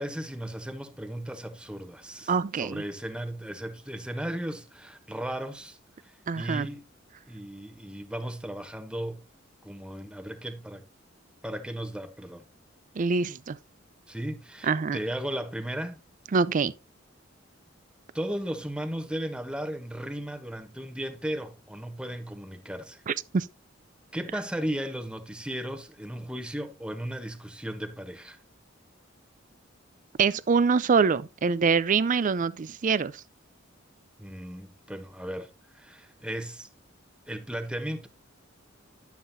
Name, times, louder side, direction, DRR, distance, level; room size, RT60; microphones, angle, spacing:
voice 1, 0.0-6.8 7.3-9.2 9.6-10.9 11.4-12.4 14.1-16.0 18.1-23.0 24.1-28.4 34.2-36.7 37.3-38.1, right 1 dB, 5° right, 0.8 m, -36 dB
voice 2, 2.3-2.8 6.3-6.7 13.0-13.6 14.6-15.0 16.3-16.7 23.1-23.5 30.2-33.1, right 5 dB, 40° right, 0.4 m, -24 dB
11.0 x 7.2 x 2.6 m
head